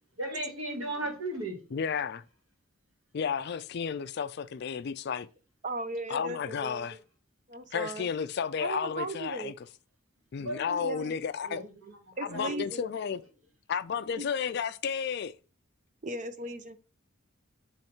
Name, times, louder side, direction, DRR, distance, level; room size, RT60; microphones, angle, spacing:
voice 1, 0.2-1.6 10.4-10.8 11.4-12.6, right 1 dB, 85° right, 2.2 m, -36 dB
voice 2, 1.7-2.2 3.1-5.3 6.1-7.0 7.7-9.5 10.3-11.6 12.3-13.2 13.7-15.3, left 6 dB, 55° left, 0.4 m, -32 dB
voice 3, 5.6-6.9 7.5-8.1 8.6-9.5 10.8-11.1 12.2-12.9 14.2-14.3 16.0-16.8, right 2 dB, 35° right, 0.7 m, -37 dB
7.7 x 3.2 x 4.4 m
head